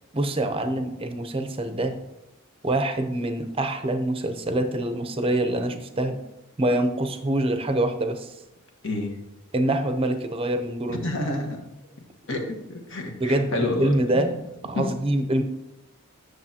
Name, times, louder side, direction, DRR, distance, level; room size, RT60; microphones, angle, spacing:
voice 1, 0.1-2.0 2.6-6.2 6.6-8.3 9.5-11.1 13.2-14.3 14.6-15.4, right 1 dB, 25° right, 7 dB, 0.6 m, -25 dB
voice 2, 8.8-9.2 10.9-11.6 12.3-14.4 14.7-14.9, left 2 dB, 60° left, 2 dB, 1.3 m, -29 dB
9.5 x 6.4 x 2.8 m, 0.94 s
head